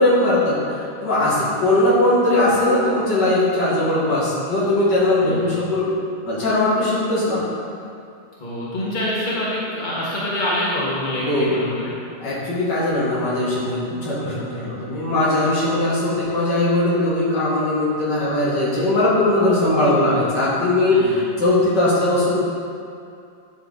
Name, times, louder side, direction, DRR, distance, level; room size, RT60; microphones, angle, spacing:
voice 1, 0.0-5.9 6.3-7.4 11.2-11.6 12.2-22.3, left 1 dB, 75° left, -8 dB, 2.5 m, -19 dB
voice 2, 5.2-5.5 8.4-11.9 20.9-21.4, left 1 dB, 25° left, -7 dB, 1.5 m, -26 dB
10.0 x 4.5 x 3.8 m, 2.5 s
omnidirectional pair, 1.9 m